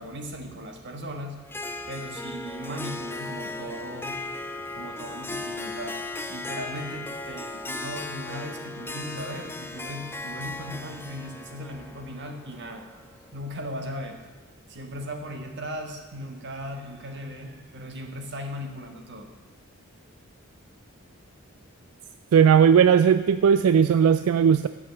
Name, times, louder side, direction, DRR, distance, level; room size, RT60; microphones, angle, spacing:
voice 1, 0.0-1.4 1.9-6.0 6.3-14.3 14.7-19.3, equal, 55° right, 4 dB, 1.4 m, -38 dB
Harp, 1.5-13.3, left 2 dB, 10° left, 0.5 m, -37 dB
voice 2, 22.3-24.7, right 7 dB, 85° right, 12 dB, 0.3 m, -17 dB
7.9 x 7.5 x 7.6 m, 1.4 s
head